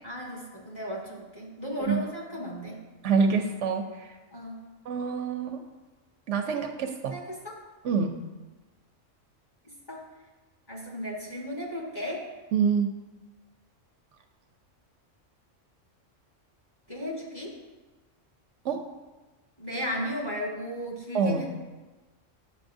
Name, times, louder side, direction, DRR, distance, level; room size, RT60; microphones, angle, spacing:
voice 1, 0.0-2.8 4.3-4.6 7.1-7.5 9.6-10.0 10.7-12.2 16.9-17.6 19.6-21.5, equal, 20° left, -4 dB, 1.3 m, -35 dB
voice 2, 3.0-4.1 4.9-5.6 6.3-7.2 7.8-8.2 12.5-12.9 18.6-18.8 21.1-21.4, right 5 dB, 75° right, 5 dB, 0.9 m, -26 dB
8.4 x 6.6 x 2.6 m, 1.2 s
omnidirectional pair, 1.3 m